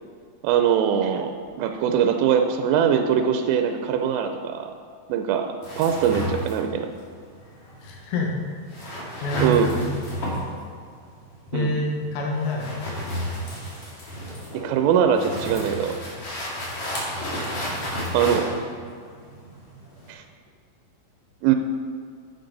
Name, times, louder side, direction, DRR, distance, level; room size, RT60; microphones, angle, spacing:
voice 1, 0.4-1.3 1.6-4.7 5.1-6.9 9.4-9.7 11.5-11.7 14.5-16.0 18.1-18.6 20.1-20.2 21.4-21.6, right 8 dB, 85° right, 6 dB, 3.1 m, -22 dB
sound 1, 5.6-20.1, equal, 45° left, 2.0 m, -32 dB
voice 2, 7.8-8.3 9.2-9.8 11.5-12.7, left 1 dB, 80° left, -1 dB, 3.9 m, -26 dB
10.5 x 8.7 x 4.0 m, 2.2 s
omnidirectional pair, 5.8 m